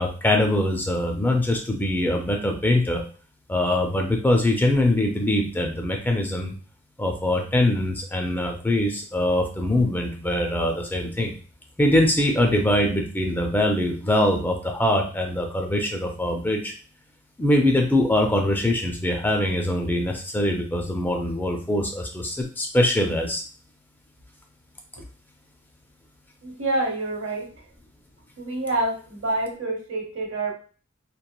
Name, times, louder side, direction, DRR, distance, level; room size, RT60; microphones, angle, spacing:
voice 1, 0.0-3.0 3.5-6.5 7.0-11.3 11.8-16.7 17.4-23.4, left 1 dB, 10° left, 3 dB, 0.3 m, -23 dB
voice 2, 26.4-27.5 28.4-30.5, right 2 dB, 80° right, 1 dB, 0.8 m, -27 dB
2.9 x 2.2 x 2.2 m, 0.40 s
head